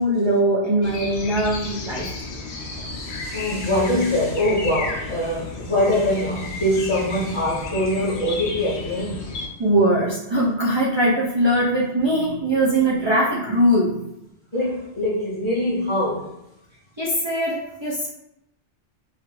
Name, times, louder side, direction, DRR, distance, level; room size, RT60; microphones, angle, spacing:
voice 1, 0.0-2.1 9.6-14.1 17.0-18.1, right 1 dB, 50° right, -6 dB, 0.3 m, -21 dB
sound 1, 0.8-9.5, left 3 dB, 70° left, 0.9 m, -33 dB
voice 2, 2.6-9.3 14.5-16.3, left 1 dB, 40° left, -7 dB, 0.4 m, -23 dB
3.1 x 2.4 x 3.0 m, 0.83 s
omnidirectional pair, 1.2 m